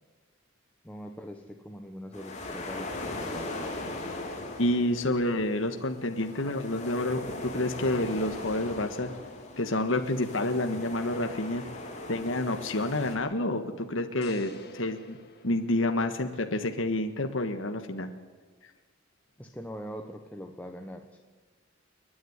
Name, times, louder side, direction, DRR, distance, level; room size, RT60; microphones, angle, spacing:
voice 1, 0.8-3.7 19.4-21.2, equal, 5° left, 3 dB, 1.1 m, -42 dB
sound 1, 2.1-13.2, left 2 dB, 35° left, 3.4 m, -39 dB
voice 2, 4.6-7.2 7.5-9.1 9.6-11.6 12.1-15.2 15.4-18.1, left 1 dB, 70° left, 6 dB, 1.5 m, -29 dB
sound 2, 14.2-16.5, left 3 dB, 55° left, 2.0 m, -50 dB
30.0 x 10.5 x 9.6 m, 1.4 s
head